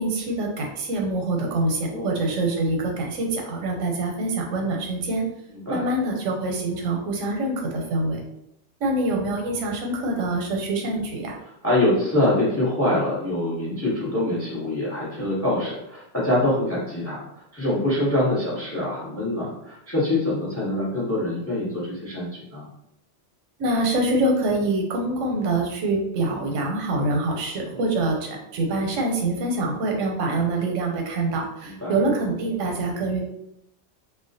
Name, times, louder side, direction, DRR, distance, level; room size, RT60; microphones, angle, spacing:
voice 1, 0.0-5.2 5.7-8.2 8.8-11.4 23.6-33.2, right 2 dB, 85° right, 1 dB, 0.9 m, -25 dB
voice 2, 5.5-5.8 11.6-17.2 17.5-22.7 27.7-27.8 31.6-32.0, left 1 dB, 20° left, -6 dB, 0.4 m, -24 dB
2.3 x 2.1 x 2.6 m, 0.79 s
omnidirectional pair, 1.3 m